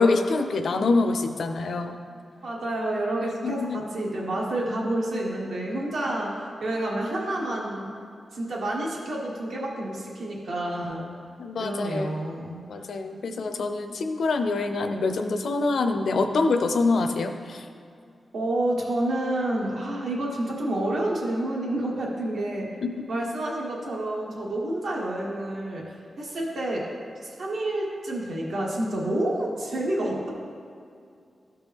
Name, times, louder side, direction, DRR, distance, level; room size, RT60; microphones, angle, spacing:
voice 1, 0.0-2.0 3.4-3.8 11.4-12.2 12.7-17.6 22.8-22.9, left 3 dB, 75° left, 7 dB, 0.5 m, -25 dB
voice 2, 2.4-6.3 6.6-7.9 8.3-11.1 11.6-12.6 13.3-13.5 18.3-22.7 23.1-26.9 27.2-30.3, right 1 dB, 85° right, -3 dB, 1.6 m, -29 dB
12.5 x 4.5 x 3.5 m, 2.4 s
wide cardioid pair, 120°, 0 cm